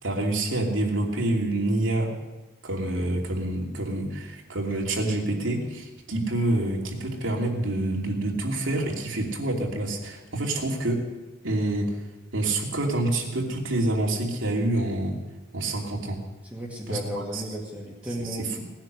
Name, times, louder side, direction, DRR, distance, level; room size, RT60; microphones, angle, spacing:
voice 1, 0.0-2.1 2.6-11.0 11.4-12.0 12.3-15.2 15.5-16.2 16.9-17.0 17.3-17.4 18.2-18.6, right 2 dB, 85° right, 0 dB, 2.8 m, -27 dB
voice 2, 16.4-18.6, equal, 5° right, -2 dB, 2.2 m, -34 dB
18.5 x 10.5 x 6.6 m, 1.1 s
head